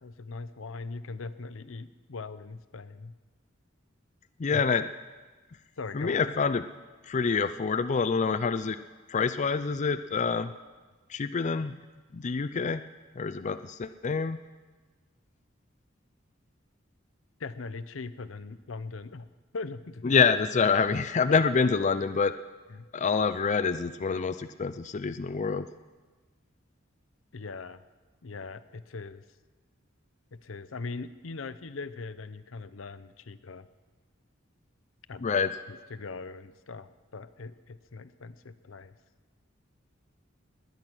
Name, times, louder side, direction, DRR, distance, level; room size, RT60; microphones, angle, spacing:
voice 1, 0.0-3.1 4.5-4.6 5.8-6.2 17.4-19.3 19.5-20.2 21.3-21.4 22.7-22.9 27.3-27.8 28.2-29.2 30.3-33.7 35.1-35.3 35.7-39.0, left 3 dB, 75° left, 14 dB, 0.7 m, -40 dB
voice 2, 4.4-4.9 5.9-6.7 7.0-8.8 9.1-10.5 11.1-11.8 12.1-12.8 13.2-14.4 20.0-22.3 22.9-25.7 35.2-35.5, left 5 dB, 35° left, 10 dB, 0.4 m, -26 dB
19.5 x 9.8 x 6.1 m, 1.3 s
head